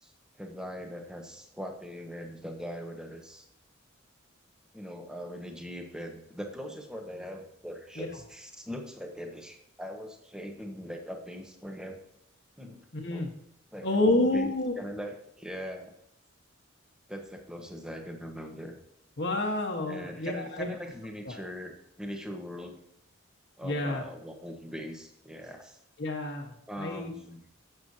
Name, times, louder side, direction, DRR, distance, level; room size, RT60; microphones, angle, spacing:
voice 1, 0.4-3.5 4.7-12.0 12.6-12.8 13.1-13.3 13.7-15.9 17.1-18.8 19.9-22.8 23.6-25.8 26.7-27.4, equal, 5° right, 3 dB, 1.2 m, -41 dB
voice 2, 12.9-13.3 13.8-14.7 19.2-20.7 21.2-21.4 23.6-24.0 26.0-27.1, left 2 dB, 55° left, 0 dB, 1.4 m, -29 dB
11.5 x 8.0 x 2.8 m, 0.79 s
head